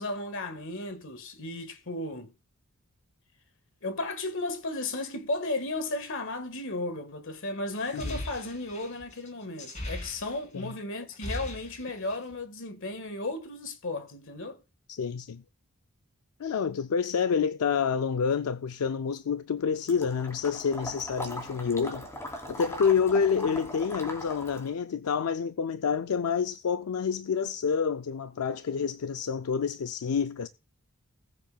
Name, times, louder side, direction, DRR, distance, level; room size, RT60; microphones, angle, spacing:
voice 1, 0.0-2.3 3.8-14.6, left 2 dB, 60° left, 1.7 m, -34 dB
sound 1, 7.7-10.7 11.0-12.3, left 1 dB, 35° left, 4.1 m, -39 dB
voice 2, 14.9-15.4 16.4-22.1 22.5-30.5, left 6 dB, 80° left, 0.4 m, -28 dB
Water / Liquid, 19.9-24.7, equal, 15° left, 3.0 m, -40 dB
20.0 x 7.5 x 2.4 m
head